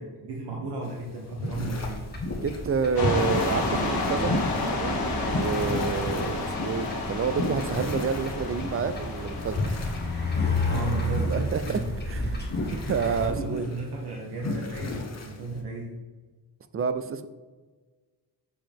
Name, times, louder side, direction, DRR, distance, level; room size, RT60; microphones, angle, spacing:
voice 1, 0.0-2.0 10.7-11.3 11.6-11.9 13.2-15.9, right 2 dB, 80° right, -2 dB, 1.2 m, -34 dB
sound 1, 0.8-15.6, left 2 dB, 40° left, 1.1 m, -34 dB
sound 2, 1.5-13.3, left 2 dB, 25° left, 1.7 m, -33 dB
voice 2, 2.4-4.4 4.7-9.6 11.3-12.2 12.7-13.7 16.7-17.3, right 5 dB, 35° right, 11 dB, 0.5 m, -29 dB
sound 3, 3.0-10.5, left 2 dB, 65° left, 1.5 m, -31 dB
6.9 x 5.7 x 3.5 m, 1.3 s
cardioid pair, 105°, 39 cm